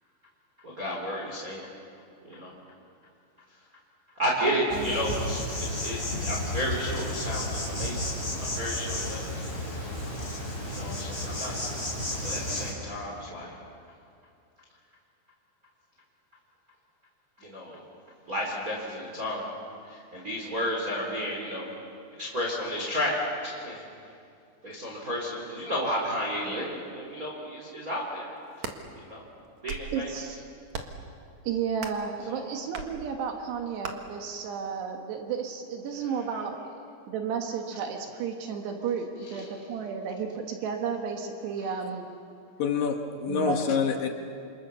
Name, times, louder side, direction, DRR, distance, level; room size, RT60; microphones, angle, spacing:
voice 1, 0.6-1.7 2.2-2.5 4.2-8.1 8.4-9.4 10.6-11.6 12.2-13.5 17.4-17.8 18.3-19.4 19.8-21.7 22.2-23.2 23.4-23.9 24.6-28.3 28.9-29.2 29.6-30.2 32.3-32.5 36.0-36.4 39.3-39.5 41.6-41.7, equal, 20° right, -2 dB, 3.5 m, -32 dB
voice 2, 4.4-5.0 29.9-30.4 31.5-36.6 37.1-42.1 43.3-43.8, right 6 dB, 80° right, 3 dB, 3.6 m, -32 dB
Insect, 4.7-12.7, left 1 dB, 15° left, 5.9 m, -32 dB
sound 1, 28.4-28.8 29.4-30.0 30.7-31.1 31.8-32.1 32.7-32.9 33.8-33.9, right 5 dB, 55° right, 2.2 m, -37 dB
voice 3, 42.6-44.1, left 6 dB, 65° left, 4 dB, 2.7 m, -27 dB
27.5 x 27.5 x 7.0 m, 2.5 s
omnidirectional pair, 4.9 m